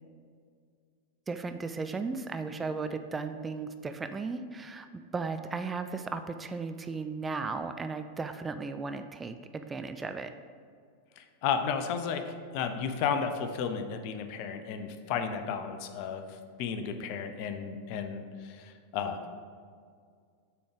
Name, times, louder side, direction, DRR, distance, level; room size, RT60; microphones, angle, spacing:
voice 1, 1.3-4.9 5.1-10.3, right 4 dB, 15° right, 9 dB, 0.3 m, -35 dB
voice 2, 11.2-19.2, left 6 dB, 45° left, 7 dB, 0.5 m, -33 dB
6.8 x 3.8 x 5.1 m, 2.1 s
figure-of-eight pair, 90°, 0 cm